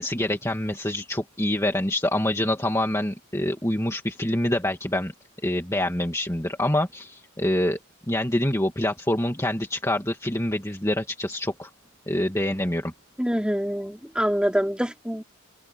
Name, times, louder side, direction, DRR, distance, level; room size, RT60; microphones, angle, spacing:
voice 1, 0.0-5.1 5.4-7.8 8.1-11.7 12.1-12.9, left 1 dB, 15° left, 2.2 m, -26 dB
voice 2, 13.2-15.2, equal, 5° right, 3.9 m, -25 dB
open air
head